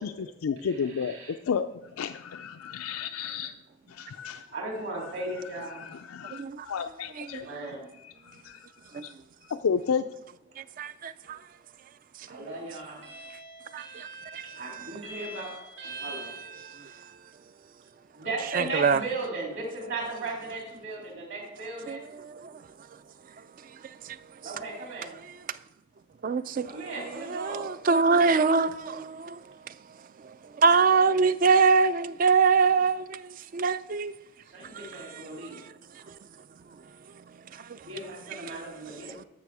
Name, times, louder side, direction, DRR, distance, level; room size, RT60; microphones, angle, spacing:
voice 1, 0.0-3.5 3.9-4.5 5.7-7.5 8.0-8.7 8.9-9.1 9.5-10.1, left 6 dB, 85° left, 0.4 m, -32 dB
voice 2, 0.6-1.3 4.5-5.9 7.4-7.9 10.5-10.6 12.3-17.1 18.1-22.0 24.4-25.1 26.6-27.7 34.4-35.6 37.9-39.2, right 2 dB, 55° right, 3.3 m, -37 dB
voice 3, 6.3-6.7 7.2-7.4 8.9-9.0 10.6-11.4 13.7-14.1 14.3-14.4 14.8-14.9 18.6-19.0 21.9-22.6 24.0-24.2 26.2-26.7 27.3-29.4 30.6-34.1 37.7-37.8 39.2-39.3, right 4 dB, 40° right, 0.3 m, -24 dB
13.5 x 6.0 x 4.8 m
head